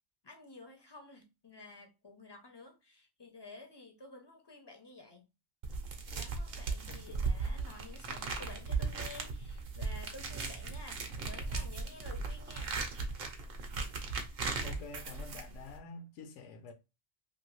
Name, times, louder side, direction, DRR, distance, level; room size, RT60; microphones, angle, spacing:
voice 1, 0.2-5.3 6.1-12.8, left 3 dB, 40° left, 0.3 m, -52 dB
sound 1, 5.6-15.8, right 4 dB, 60° right, 0.8 m, -37 dB
voice 2, 6.9-7.2 14.6-16.7, left 4 dB, 85° left, 0.9 m, -48 dB
2.7 x 2.6 x 3.0 m
omnidirectional pair, 1.2 m